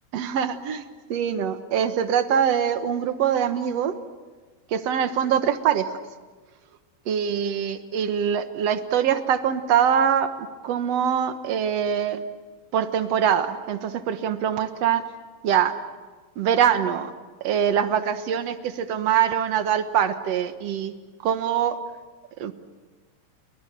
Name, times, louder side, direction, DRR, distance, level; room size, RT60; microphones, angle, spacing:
voice 1, 0.1-3.9 4.7-5.9 7.1-10.3 10.6-12.2 12.7-15.0 15.4-15.7 16.4-17.1 17.4-20.9 21.2-21.8 22.4-22.5, right 8 dB, 60° right, 9 dB, 1.9 m, -23 dB
29.5 x 23.0 x 7.6 m, 1.4 s
omnidirectional pair, 4.1 m